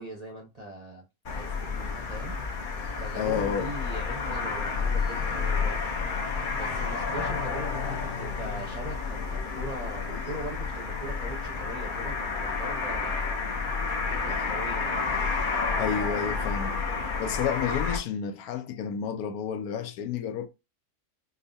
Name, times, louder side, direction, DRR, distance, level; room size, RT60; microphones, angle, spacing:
voice 1, 0.0-2.4 2.9-5.9 6.5-13.6 14.0-15.1, right 1 dB, 35° right, 0.6 m, -41 dB
sound 1, 1.2-18.0, left 4 dB, 45° left, 0.7 m, -30 dB
voice 2, 3.2-3.7 15.8-16.8 17.2-20.5, left 8 dB, 80° left, 1.1 m, -30 dB
5.3 x 2.3 x 2.6 m
omnidirectional pair, 1.6 m